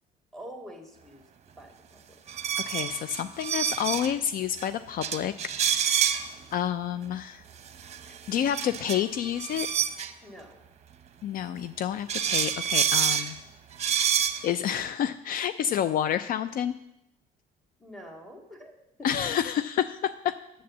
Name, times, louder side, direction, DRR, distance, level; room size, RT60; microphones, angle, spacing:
voice 1, 0.3-1.2 1.6-2.0 10.2-10.7 17.8-19.4, equal, ahead, 2 dB, 2.0 m, -45 dB
sound 1, 2.3-4.1 4.6-4.7 5.0-6.3 7.7-10.1 11.6-11.7 12.1-13.3 13.7-14.5, right 8 dB, 40° right, 0.8 m, -27 dB
voice 2, 2.7-6.2 6.5-7.4 8.3-9.7 11.2-13.4 14.0-14.1 14.4-16.8 19.0-20.3, left 9 dB, 60° left, 13 dB, 0.4 m, -29 dB
8.7 x 7.2 x 7.2 m, 0.84 s
cardioid pair, 110°, 17 cm